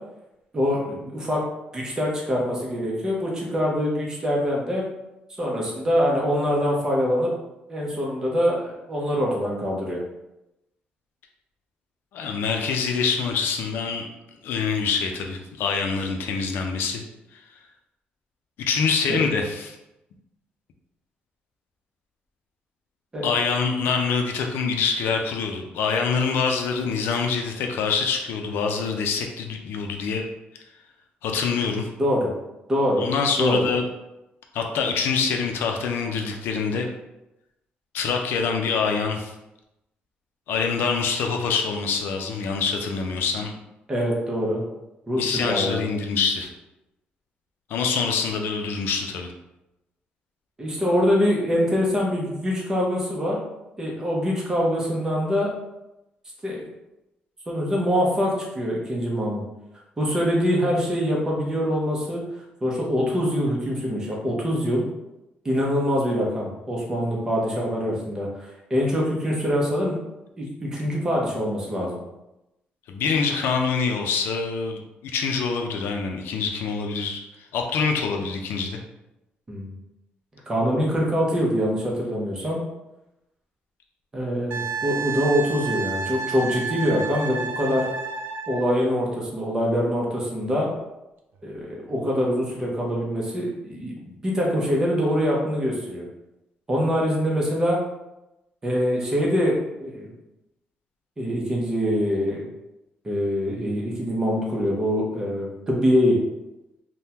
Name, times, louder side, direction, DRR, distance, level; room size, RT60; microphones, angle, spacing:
voice 1, 0.5-1.4 1.7-4.8 5.4-7.3 7.7-10.0 23.1-23.3 32.0-32.3 32.7-33.1 33.4-33.7 43.9-44.6 45.1-45.9 50.6-53.4 53.8-55.5 56.4-56.7 57.5-59.4 60.0-62.2 62.6-64.9 65.4-70.0 70.4-72.0 79.5-79.7 80.5-82.6 84.1-87.9 88.5-90.7 91.4-96.1 96.7-97.8 98.6-100.1 101.2-102.4 103.0-106.2, equal, 20° right, -3 dB, 0.7 m, -24 dB
voice 2, 12.1-14.1 14.4-17.0 17.3-17.4 18.7-19.8 23.2-30.2 31.2-31.9 33.0-33.8 34.5-36.9 37.9-39.3 40.5-43.5 45.2-46.5 47.7-49.3 72.9-74.8 75.1-78.8, left 5 dB, 80° left, 3 dB, 0.5 m, -25 dB
Wind instrument woodwind instrument, 84.5-88.7 91.4-91.6, right 5 dB, 70° right, 0.4 m, -31 dB
3.5 x 2.2 x 2.8 m, 0.93 s
cardioid pair, 175°, 4 cm